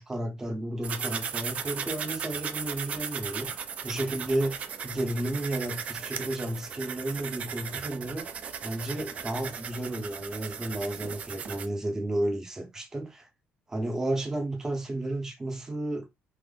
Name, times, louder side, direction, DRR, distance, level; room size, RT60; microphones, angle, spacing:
voice 1, 0.0-8.3 8.6-13.3 13.7-16.0, right 1 dB, 15° right, 0.7 m, -32 dB
sound 1, 0.8-11.7, right 7 dB, 35° right, 0.4 m, -37 dB
3.4 x 2.0 x 3.7 m
cardioid pair, 165°, 4 cm